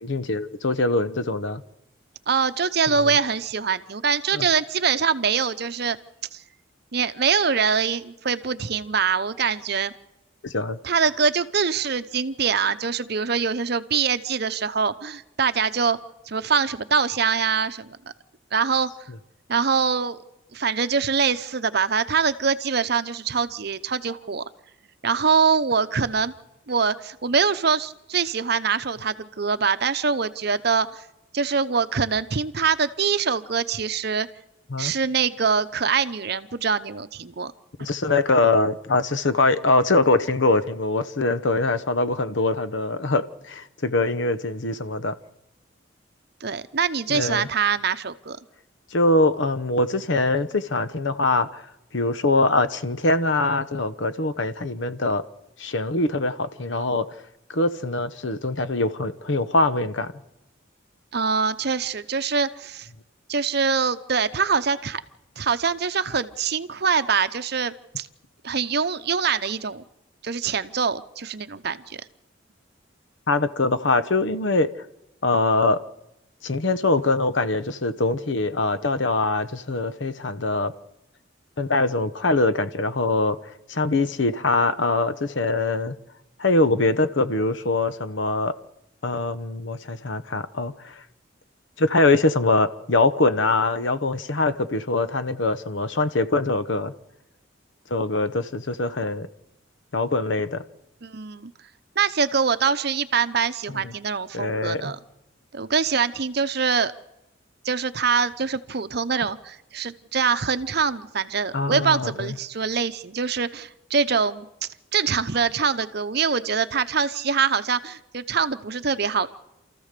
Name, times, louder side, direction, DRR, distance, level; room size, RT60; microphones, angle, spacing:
voice 1, 0.0-1.6 3.0-3.1 4.3-4.5 10.4-10.8 34.7-34.9 37.8-45.1 47.1-47.5 48.9-51.6 51.9-55.2 55.6-57.1 57.5-60.1 73.3-74.7 75.2-75.8 76.4-80.7 81.6-83.4 83.7-85.9 86.4-88.5 89.0-90.9 91.8-96.9 97.9-99.3 99.9-100.6 103.7-103.8 104.3-104.9 111.5-112.3, left 2 dB, 65° left, 13 dB, 0.9 m, -23 dB
voice 2, 2.3-6.0 6.3-6.4 6.9-9.9 10.8-16.0 16.3-18.0 18.5-18.9 19.5-20.2 20.5-24.4 25.0-26.3 26.7-31.0 31.3-34.3 34.8-37.5 46.4-48.4 61.1-62.9 63.3-65.0 65.4-68.1 68.4-69.8 70.2-72.0 101.0-101.5 102.0-105.0 105.5-106.9 107.6-114.5 114.9-119.3, right 5 dB, 55° right, 12 dB, 0.8 m, -24 dB
28.5 x 14.5 x 6.7 m, 0.94 s
head